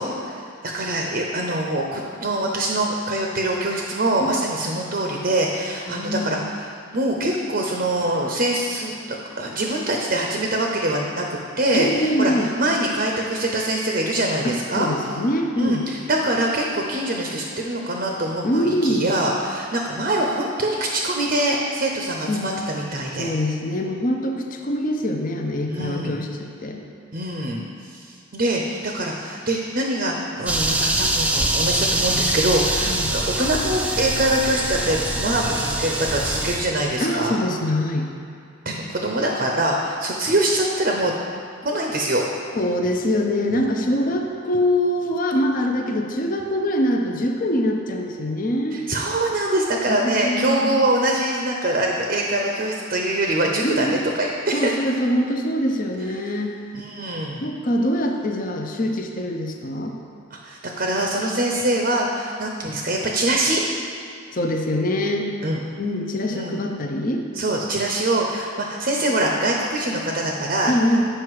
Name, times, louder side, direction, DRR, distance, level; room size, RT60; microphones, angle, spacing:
voice 1, 0.0-11.2 11.6-14.9 15.6-23.3 25.7-26.2 27.1-27.6 27.9-37.4 38.6-41.1 41.6-42.2 48.7-54.7 56.7-57.5 60.3-63.6 65.4-65.6 66.3-66.5 67.3-70.7, right 1 dB, 40° right, 0 dB, 0.6 m, -24 dB
voice 2, 5.9-6.5 11.7-12.5 14.4-15.9 18.4-19.1 22.3-22.4 23.2-26.8 32.8-33.1 37.0-38.1 42.5-48.8 49.9-50.9 53.6-54.0 54.5-56.5 57.4-60.0 64.3-65.3 65.8-67.2 70.6-71.0, left 1 dB, 40° left, 2 dB, 0.6 m, -24 dB
sound 1, 30.5-36.6, right 1 dB, 5° right, 0.3 m, -24 dB
7.8 x 5.8 x 4.7 m, 2.4 s
head